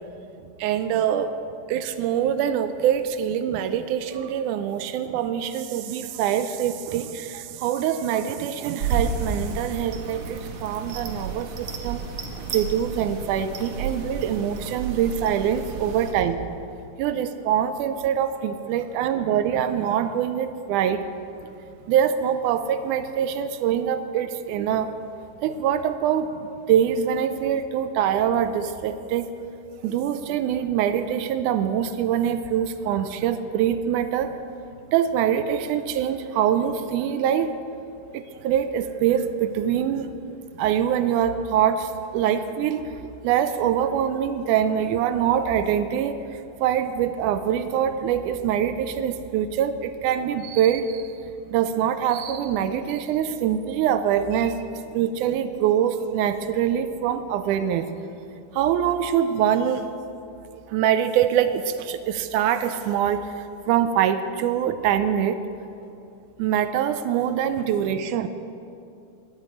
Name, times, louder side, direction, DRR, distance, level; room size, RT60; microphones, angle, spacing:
voice 1, 0.6-1.3 1.7-12.0 12.4-16.4 17.0-21.0 21.9-24.9 25.4-26.3 26.7-29.3 29.8-34.4 34.9-37.5 38.1-40.2 40.6-46.2 46.6-51.0 51.5-57.9 58.5-59.9 60.7-63.3 63.7-65.4 66.4-68.3, right 9 dB, 80° right, 11 dB, 2.0 m, -24 dB
sound 1, 8.8-16.1, right 4 dB, 60° right, 1.5 m, -32 dB
10.5 x 8.9 x 8.3 m, 2.6 s
omnidirectional pair, 3.7 m